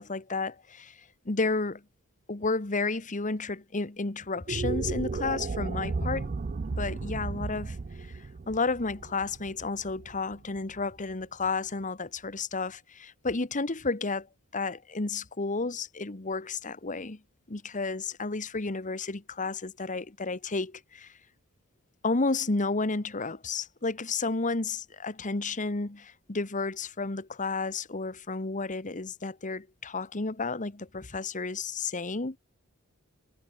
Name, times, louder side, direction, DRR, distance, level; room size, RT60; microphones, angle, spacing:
voice 1, 0.0-1.8 2.3-6.3 6.7-14.3 14.5-17.2 17.5-21.1 22.0-32.4, left 3 dB, 35° left, 1.3 m, -32 dB
sound 1, 4.3-10.7, right 4 dB, 40° right, 0.4 m, -34 dB
head